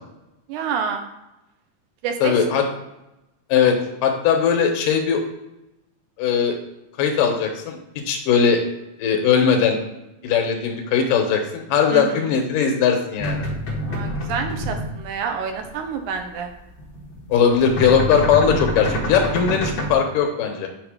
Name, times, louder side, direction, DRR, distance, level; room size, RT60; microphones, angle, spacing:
voice 1, 0.5-1.0 2.0-2.6 11.9-12.2 13.9-16.5, right 6 dB, 75° right, 5 dB, 2.1 m, -28 dB
voice 2, 2.2-2.6 3.5-5.2 6.2-6.6 7.0-7.8 8.1-8.6 9.0-9.8 10.2-13.5 17.3-20.7, left 7 dB, 80° left, 4 dB, 2.7 m, -19 dB
sound 1, 13.2-15.0 15.4-15.7 16.0-16.2 16.5-19.9, left 1 dB, 55° left, 1.2 m, -26 dB
7.9 x 3.6 x 5.0 m, 0.93 s
omnidirectional pair, 3.8 m